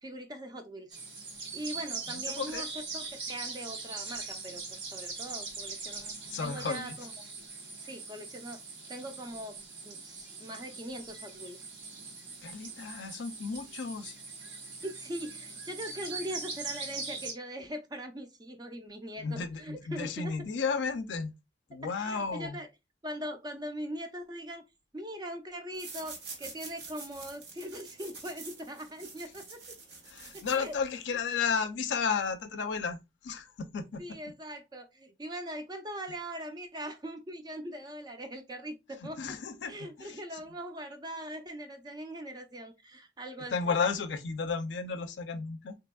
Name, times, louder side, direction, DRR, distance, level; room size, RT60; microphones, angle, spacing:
voice 1, 0.0-1.0 1.5-7.1 7.8-8.6 8.9-9.6 9.8-11.7 14.8-20.3 21.8-22.7 23.0-24.6 24.9-29.8 30.3-30.8 34.0-39.4 39.7-43.8, equal, 20° right, 0.4 m, -41 dB
sound 1, 0.9-17.3, right 4 dB, 90° right, 1.1 m, -41 dB
voice 2, 2.1-2.6 6.3-7.0 12.4-14.2 19.2-21.3 21.7-22.6 30.1-34.2 39.2-40.4 43.5-45.8, left 5 dB, 80° left, 0.4 m, -33 dB
sound 2, 25.7-31.0, right 4 dB, 70° right, 1.2 m, -47 dB
3.4 x 2.8 x 2.2 m
head